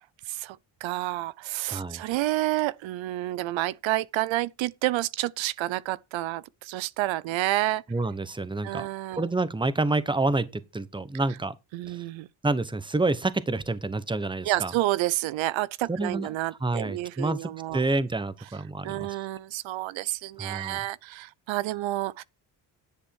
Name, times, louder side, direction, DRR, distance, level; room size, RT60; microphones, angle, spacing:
voice 1, 0.3-7.8 8.6-9.2 11.7-12.3 14.4-17.8 18.8-22.2, right 16 dB, 90° right, 0.6 m, -29 dB
voice 2, 1.7-2.0 7.9-8.9 9.2-11.5 11.9-12.0 12.4-14.7 15.9-16.3 16.6-19.1 20.4-20.8, right 2 dB, 10° right, 1.0 m, -28 dB
10.5 x 8.0 x 4.6 m
cardioid pair, 115°, 45 cm